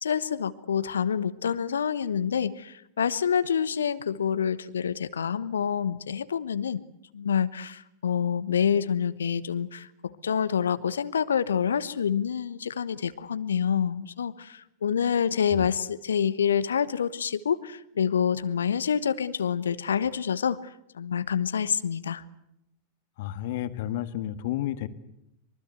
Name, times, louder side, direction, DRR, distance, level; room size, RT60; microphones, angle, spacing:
voice 1, 0.0-6.8 7.1-22.2, left 7 dB, 70° left, 15 dB, 1.0 m, -27 dB
voice 2, 23.2-24.9, left 13 dB, 50° left, 11 dB, 1.7 m, -31 dB
24.5 x 23.5 x 8.2 m, 0.83 s
figure-of-eight pair, 90°, 0 cm